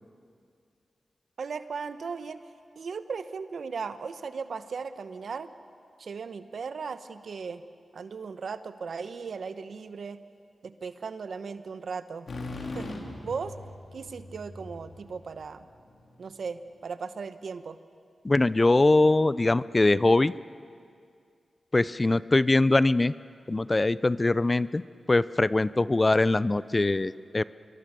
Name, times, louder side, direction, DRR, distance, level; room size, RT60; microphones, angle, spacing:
voice 1, 1.4-2.4 2.8-5.5 6.0-7.6 7.9-10.2 10.6-12.3 12.7-13.0 13.2-13.5 13.9-15.6 16.2-17.8, right 5 dB, 75° right, 11 dB, 1.0 m, -37 dB
sound 1, 12.3-16.0, left 2 dB, 70° left, 3.2 m, -40 dB
voice 2, 18.2-20.3 21.7-23.1 23.5-24.8 25.1-27.4, left 2 dB, 35° left, 17 dB, 0.6 m, -22 dB
25.5 x 23.0 x 6.9 m, 2.3 s
cardioid pair, 45°, 0 cm